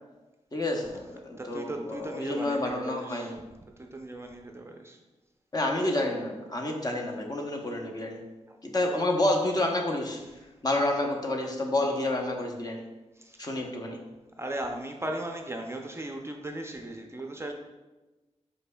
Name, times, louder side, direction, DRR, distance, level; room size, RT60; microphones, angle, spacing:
voice 1, 0.5-3.4 5.5-8.2 8.6-10.2 10.6-12.8 13.4-14.0, left 1 dB, 30° left, 1 dB, 0.7 m, -29 dB
voice 2, 1.4-3.3 3.8-5.0 8.5-8.6 13.2-13.5 14.4-17.5, right 1 dB, 20° right, 3 dB, 0.4 m, -37 dB
5.1 x 4.3 x 2.2 m, 1.1 s
wide cardioid pair, 80°, 12 cm